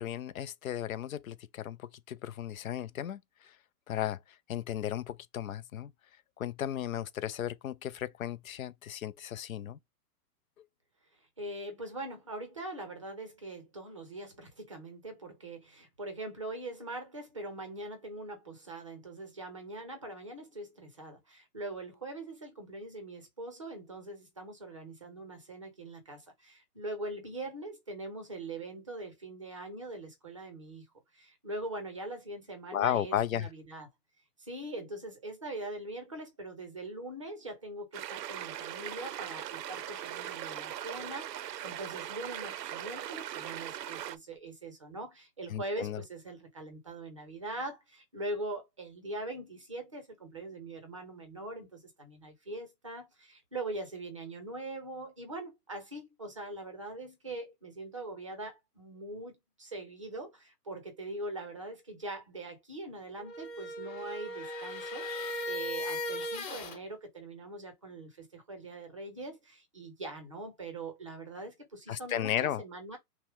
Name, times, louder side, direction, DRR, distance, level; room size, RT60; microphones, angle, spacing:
voice 1, 0.0-3.5 3.9-4.2 4.5-5.9 6.4-9.8 32.7-33.5 45.5-46.0 71.9-72.6, left 11 dB, 60° left, 0.6 m, -35 dB
voice 2, 11.4-30.9 31.1-33.9 34.4-73.0, right 2 dB, 20° right, 0.6 m, -42 dB
sound 1, 37.9-44.2, right 11 dB, 85° right, 0.7 m, -40 dB
sound 2, 63.2-66.8, left 1 dB, 30° left, 2.7 m, -37 dB
5.8 x 2.1 x 3.4 m
hypercardioid pair, 175°, 48 cm